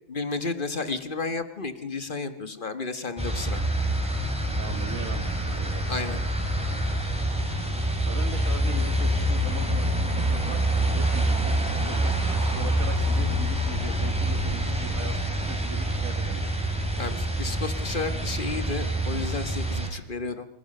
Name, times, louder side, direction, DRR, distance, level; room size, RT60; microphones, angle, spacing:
voice 1, 0.1-3.6 5.9-6.2 17.0-20.5, left 3 dB, 40° left, 10 dB, 1.4 m, -32 dB
sound 1, 3.2-19.9, right 1 dB, 5° right, 3.3 m, -26 dB
voice 2, 4.6-5.9 8.0-16.5, right 3 dB, 90° right, 7 dB, 2.6 m, -39 dB
26.0 x 15.5 x 6.6 m, 0.79 s
omnidirectional pair, 1.4 m